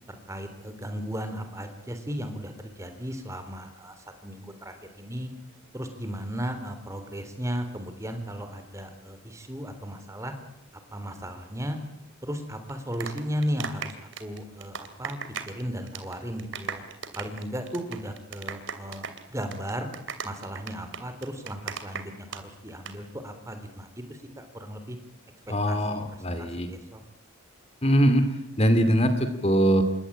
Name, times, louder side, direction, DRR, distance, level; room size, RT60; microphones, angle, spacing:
voice 1, 0.1-5.3 5.7-10.3 10.9-11.8 12.2-15.2 15.4-16.8 17.2-19.9 20.2-25.0 25.7-26.0 26.3-27.0, equal, 15° right, 8 dB, 3.5 m, -35 dB
sound 1, 12.7-15.6 15.9-16.1 16.4-22.4 22.7-22.9, right 6 dB, 60° right, 2.8 m, -36 dB
voice 2, 25.5-26.7 27.8-29.8, equal, 30° left, 10 dB, 2.6 m, -22 dB
27.5 x 24.0 x 8.8 m, 0.77 s
head